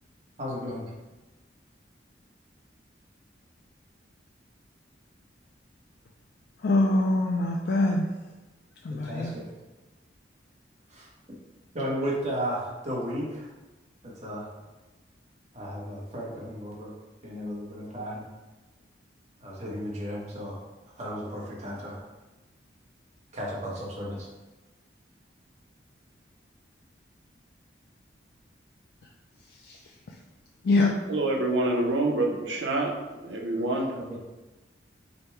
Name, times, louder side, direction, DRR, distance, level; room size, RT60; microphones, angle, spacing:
voice 1, 0.4-0.8 8.9-9.4 10.9-11.1 11.7-13.5 14.0-14.5 15.5-16.9 17.2-18.2 19.4-20.6 21.0-22.0 23.3-24.3 33.9-34.2, equal, 40° right, -5 dB, 1.0 m, -34 dB
voice 2, 6.6-8.1 8.8-9.3 29.6-29.8 30.6-30.9, left 2 dB, 60° left, 0 dB, 0.4 m, -24 dB
voice 3, 31.1-34.0, right 2 dB, 85° right, 0 dB, 0.8 m, -27 dB
5.0 x 2.2 x 4.5 m, 1.1 s
head